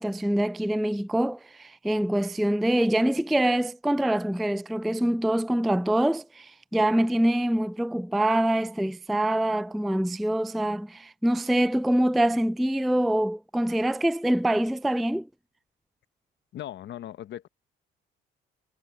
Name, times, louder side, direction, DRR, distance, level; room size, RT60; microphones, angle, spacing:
voice 1, 0.0-15.3, right 1 dB, ahead, 0.3 m, -25 dB
voice 2, 16.5-17.5, left 12 dB, 60° left, 1.1 m, -38 dB
supercardioid pair, 75°, 21 cm